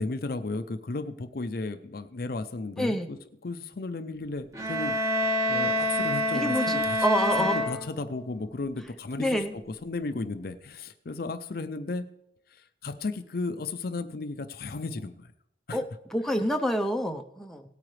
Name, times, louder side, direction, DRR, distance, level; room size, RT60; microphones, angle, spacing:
voice 1, 0.0-5.0 5.5-7.0 7.4-12.1 12.5-15.3 15.7-15.9, left 3 dB, 50° left, 10 dB, 0.5 m, -34 dB
voice 2, 2.8-3.1 6.3-7.6 9.2-9.5 15.7-15.8 16.1-17.6, equal, ahead, 4 dB, 0.6 m, -27 dB
sound 1, 4.5-8.4, equal, 15° right, 1.1 m, -27 dB
17.5 x 8.7 x 3.2 m, 0.78 s
head